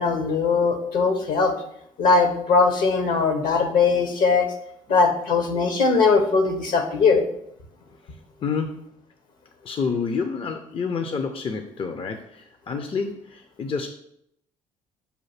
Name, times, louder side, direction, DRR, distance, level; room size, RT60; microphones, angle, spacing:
voice 1, 0.0-1.5 2.0-4.5 4.9-7.2, left 4 dB, 65° left, 5 dB, 1.1 m, -20 dB
voice 2, 8.4-8.9 9.6-13.9, left 5 dB, 35° left, 6 dB, 0.6 m, -28 dB
6.8 x 2.6 x 5.7 m, 0.74 s
hypercardioid pair, 50°, 16 cm